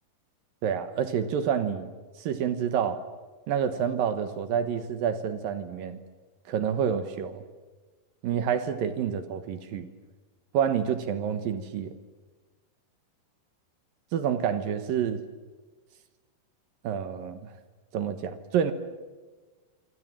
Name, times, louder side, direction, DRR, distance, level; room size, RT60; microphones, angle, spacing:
voice 1, 0.6-1.9 2.2-3.0 3.5-6.0 6.5-7.4 8.2-9.9 10.5-11.9 14.1-15.2 16.8-17.5 17.9-18.7, right 8 dB, 65° right, 10 dB, 2.5 m, -28 dB
26.0 x 26.0 x 7.5 m, 1.3 s
omnidirectional pair, 5.3 m